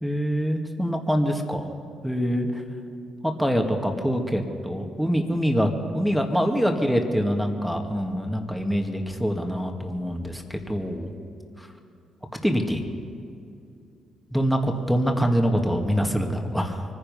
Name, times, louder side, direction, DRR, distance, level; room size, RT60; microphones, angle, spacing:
voice 1, 0.0-1.7 2.0-2.6 3.2-11.1 11.6-11.7 12.4-12.8 14.3-16.8, equal, ahead, 3 dB, 2.0 m, -25 dB
24.5 x 10.0 x 5.6 m, 2.5 s
supercardioid pair, 55°, 0 cm